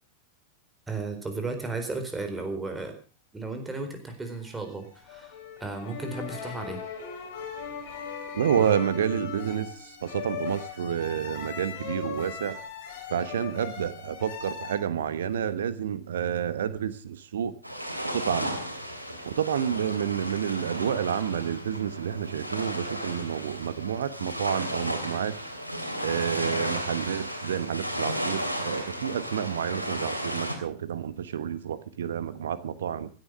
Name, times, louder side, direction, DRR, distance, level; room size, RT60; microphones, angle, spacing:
voice 1, 0.9-2.9 3.3-5.3 5.6-6.8, right 3 dB, 10° right, 6 dB, 4.2 m, -34 dB
sound 1, 4.3-14.8, left 6 dB, 55° left, 3.6 m, -39 dB
voice 2, 8.3-12.6 13.1-17.5 18.0-18.6 19.2-25.4 26.0-33.1, right 9 dB, 65° right, 14 dB, 1.2 m, -29 dB
sound 2, 17.6-30.6, equal, 85° right, 3.0 m, -34 dB
16.0 x 11.0 x 6.4 m, 0.39 s
figure-of-eight pair, 90°, 0 cm